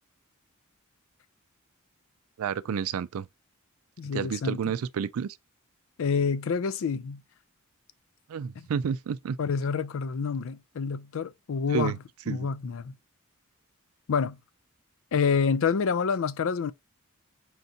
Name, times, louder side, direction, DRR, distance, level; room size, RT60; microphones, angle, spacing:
voice 1, 2.4-3.3 4.1-5.4 8.3-9.4 11.7-12.0 12.3-12.5, right 7 dB, 75° right, 0.4 m, -30 dB
voice 2, 4.0-4.6 6.0-7.2 8.6-8.7 9.4-12.0 12.3-13.0 14.1-14.4 15.1-16.7, left 5 dB, 65° left, 0.4 m, -27 dB
4.5 x 2.7 x 3.8 m
head